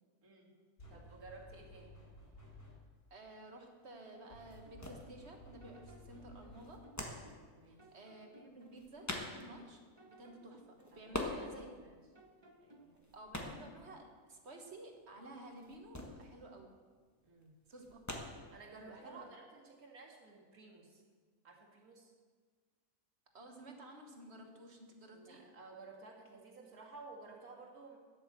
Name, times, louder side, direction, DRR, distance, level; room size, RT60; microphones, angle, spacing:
voice 1, 0.2-0.5 0.9-2.0 7.5-7.9 10.9-12.0 12.6-13.1 17.2-17.6 18.5-21.0 21.4-22.1 25.1-28.0, right 3 dB, 80° right, -2 dB, 2.5 m, -55 dB
sound 1, 0.8-3.0 4.3-7.0, left 1 dB, 55° left, 4.0 m, -56 dB
sound 2, 3.0-19.3, left 1 dB, 10° left, 1.3 m, -46 dB
voice 2, 3.1-6.9 7.7-11.8 13.1-16.8 17.7-18.3 18.7-19.3 23.3-25.5, right 1 dB, 50° right, 3 dB, 1.7 m, -53 dB
sound 3, 4.2-5.3 5.6-7.5 7.8-9.6 10.0-11.9 12.2-13.0, right 2 dB, 20° right, 1.2 m, -61 dB
10.0 x 8.6 x 7.4 m, 1.5 s
omnidirectional pair, 1.5 m